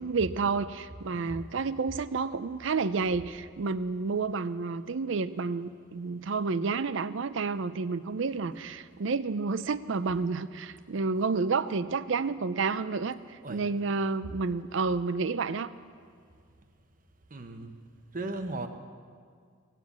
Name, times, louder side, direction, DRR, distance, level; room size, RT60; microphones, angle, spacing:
voice 1, 0.0-15.7, right 4 dB, 65° right, 15 dB, 0.5 m, -30 dB
voice 2, 17.3-17.8 18.1-18.7, right 2 dB, 40° right, 7 dB, 0.9 m, -37 dB
18.0 x 8.3 x 8.3 m, 2.1 s
head